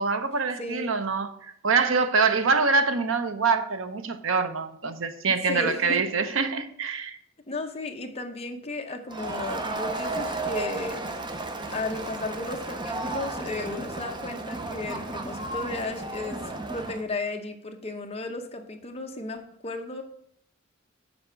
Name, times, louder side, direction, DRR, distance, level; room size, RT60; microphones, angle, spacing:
voice 1, 0.0-7.2, right 4 dB, 70° right, 0.7 m, -25 dB
voice 2, 0.6-0.9 5.3-6.0 7.5-11.0 11.7-16.4 16.7-20.0, left 2 dB, 30° left, 0.8 m, -34 dB
Crowd, 9.1-17.0, right 2 dB, 20° right, 0.6 m, -33 dB
7.0 x 4.2 x 6.7 m
head